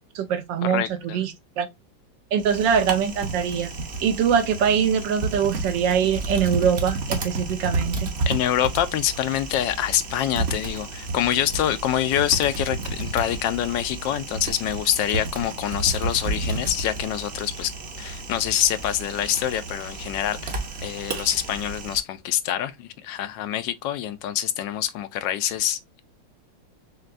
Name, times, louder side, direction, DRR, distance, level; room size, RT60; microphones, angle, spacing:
voice 1, 0.0-1.7 2.3-3.7 4.0-8.1, right 7 dB, 80° right, 1.4 m, -23 dB
voice 2, 0.6-1.2 8.3-17.7 18.0-26.0, left 11 dB, 80° left, 1.3 m, -25 dB
Typing, 2.4-22.0, right 3 dB, 45° right, 0.9 m, -31 dB
6.5 x 2.2 x 2.4 m
omnidirectional pair, 2.0 m